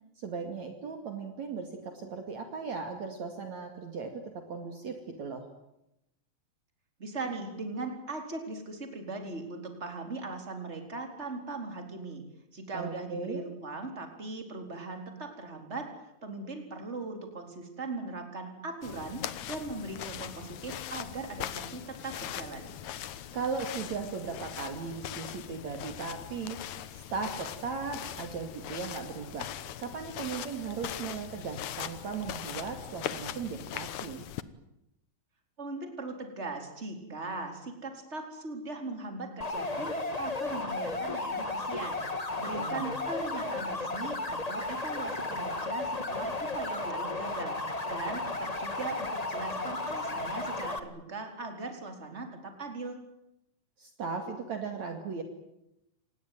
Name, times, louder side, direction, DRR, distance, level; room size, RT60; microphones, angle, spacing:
voice 1, 0.2-5.5 12.7-13.4 23.3-26.6 26.9-34.3 42.5-43.0 53.8-55.2, right 5 dB, 55° right, 5 dB, 3.5 m, -37 dB
voice 2, 7.0-12.2 12.5-15.9 16.2-22.7 35.6-42.0 42.4-47.6 47.9-53.0, right 3 dB, 20° right, 5 dB, 4.3 m, -39 dB
sound 1, 18.8-34.4, left 11 dB, 65° left, 2.2 m, -40 dB
sound 2, 39.4-50.8, left 2 dB, 25° left, 0.9 m, -34 dB
27.0 x 19.5 x 9.3 m, 0.85 s
omnidirectional pair, 4.1 m